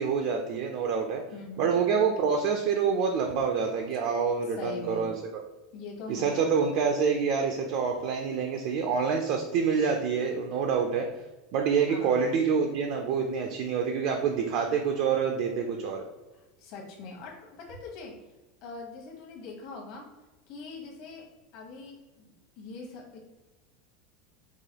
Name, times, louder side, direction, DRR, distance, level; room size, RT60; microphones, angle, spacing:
voice 1, 0.0-1.2 1.6-5.1 6.1-11.1 11.5-16.0, right 6 dB, 45° right, 2 dB, 0.4 m, -27 dB
voice 2, 1.3-1.7 4.6-5.1 5.7-6.7 11.9-12.2 16.3-18.1 18.6-20.0 20.5-21.3 21.5-23.2, left 3 dB, 50° left, -2 dB, 1.0 m, -42 dB
4.8 x 2.2 x 2.8 m, 1.1 s
supercardioid pair, 175°, 0 cm